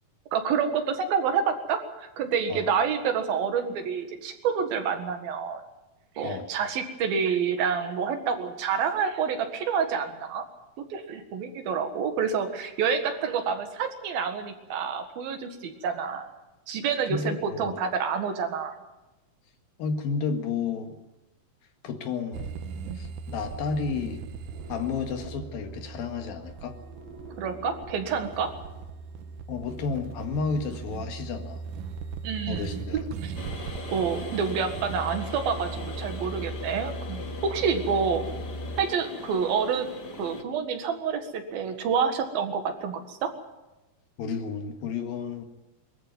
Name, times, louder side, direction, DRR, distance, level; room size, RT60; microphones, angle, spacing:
voice 1, 0.3-5.6 6.2-10.5 10.9-16.3 16.7-18.8 22.9-23.0 27.4-28.5 32.2-33.3 33.9-38.2 38.8-39.9 40.2-43.3, right 6 dB, 85° right, 6 dB, 3.7 m, -28 dB
voice 2, 17.1-17.8 19.8-21.0 21.8-22.5 23.0-24.2 24.7-26.7 29.5-31.6 32.5-33.1 44.2-45.5, left 5 dB, 85° left, 5 dB, 3.6 m, -31 dB
sound 1, 22.3-38.8, right 4 dB, 70° right, 2.5 m, -38 dB
sound 2, 24.5-29.1, right 1 dB, 30° right, 5.3 m, -49 dB
sound 3, 33.3-40.4, left 4 dB, 50° left, 1.2 m, -40 dB
23.0 x 13.5 x 9.3 m, 1.0 s
omnidirectional pair, 4.1 m